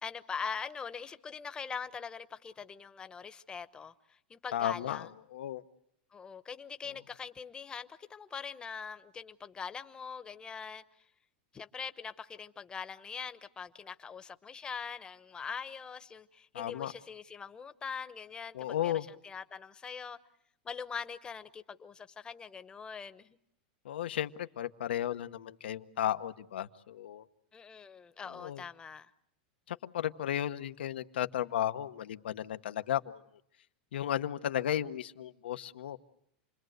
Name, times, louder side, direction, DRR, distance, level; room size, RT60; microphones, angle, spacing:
voice 1, 0.0-5.1 6.1-11.0 11.5-20.2 20.6-23.4 27.5-29.1, left 6 dB, 15° left, 0.9 m, -42 dB
voice 2, 4.5-5.1 5.3-5.6 16.5-16.9 18.5-19.1 23.8-27.2 28.4-28.6 29.7-33.2 33.9-36.0, left 11 dB, 90° left, 1.1 m, -34 dB
29.0 x 21.5 x 7.9 m
supercardioid pair, 145°, 6 cm